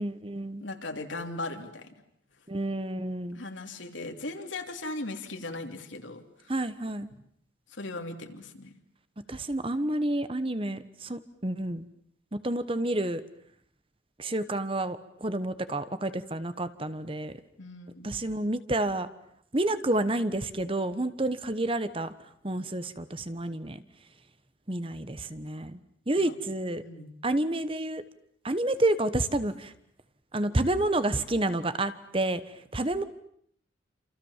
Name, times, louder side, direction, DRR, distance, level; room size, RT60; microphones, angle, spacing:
voice 1, 0.0-0.6 2.5-3.4 6.5-7.1 9.3-11.9 12.3-13.2 14.2-17.3 18.0-19.1 19.5-22.1 22.4-23.8 24.7-25.8 26.1-26.8 27.2-28.0 28.4-29.7 30.3-32.4 32.7-33.0, right 1 dB, 25° right, 13 dB, 1.1 m, -29 dB
voice 2, 0.6-2.0 3.3-6.5 7.7-8.7 17.6-18.2 26.2-26.3 26.8-27.2, left 2 dB, 75° left, 5 dB, 3.1 m, -38 dB
28.5 x 27.5 x 7.4 m, 0.68 s
head